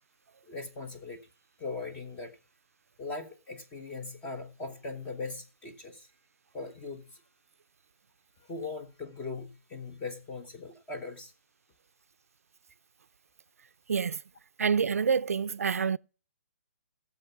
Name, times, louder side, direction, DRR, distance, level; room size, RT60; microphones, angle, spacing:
voice 1, 0.4-1.3 1.6-2.4 3.0-6.1 6.5-7.2 8.4-11.3, left 3 dB, 15° left, 1.2 m, -40 dB
voice 2, 13.9-14.2 14.6-16.0, right 6 dB, 90° right, 0.5 m, -27 dB
17.0 x 7.1 x 4.5 m
hypercardioid pair, 165°, 8 cm